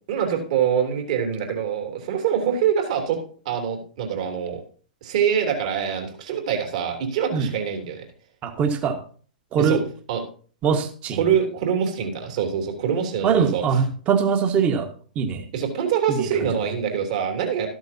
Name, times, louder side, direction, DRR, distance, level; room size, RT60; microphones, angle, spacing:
voice 1, 0.1-3.2 3.4-4.6 5.0-8.0 9.6-9.8 10.1-10.2 11.2-13.8 15.5-17.7, right 8 dB, 55° right, 3 dB, 3.2 m, -24 dB
voice 2, 8.4-9.0 9.5-9.8 10.6-11.2 13.2-14.9 15.1-15.4 16.1-16.3, right 6 dB, 30° right, 7 dB, 1.6 m, -22 dB
13.5 x 12.5 x 2.8 m, 0.42 s
figure-of-eight pair, 105°, 5 cm